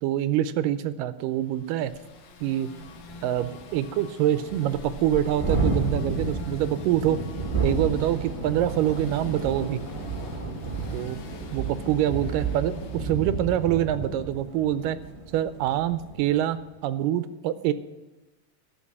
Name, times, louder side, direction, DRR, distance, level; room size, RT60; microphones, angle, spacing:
voice 1, 0.0-1.9 2.4-2.7 3.2-7.2 7.6-9.8 10.9-11.2 11.5-15.0 15.3-17.7, right 12 dB, 85° right, 13 dB, 2.2 m, -25 dB
sound 1, 1.3-14.2, left 4 dB, 65° left, 2.4 m, -48 dB
Thunderstorm, 2.0-2.1 2.4-2.5 2.8-16.4, right 4 dB, 20° right, 0.8 m, -31 dB
12.5 x 6.2 x 8.5 m, 1.1 s
omnidirectional pair, 3.8 m